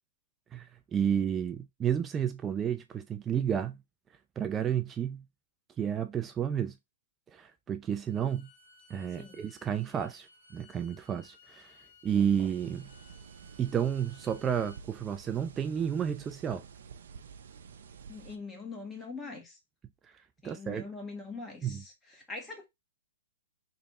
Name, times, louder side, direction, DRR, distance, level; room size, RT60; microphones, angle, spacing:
voice 1, 0.5-3.8 4.4-5.2 5.8-6.8 7.3-8.5 8.9-10.3 10.5-11.7 12.0-12.9 13.6-16.6 20.4-20.8 21.6-21.8, right 8 dB, 15° right, 0.3 m, -31 dB
Bowed string instrument, 8.1-14.8, left 3 dB, 60° left, 1.8 m, -59 dB
sound 1, 12.1-18.4, right 6 dB, 70° right, 0.5 m, -50 dB
voice 2, 18.1-19.6 20.4-22.7, left 4 dB, 5° left, 0.9 m, -43 dB
3.2 x 2.2 x 4.1 m
hypercardioid pair, 150°, 0 cm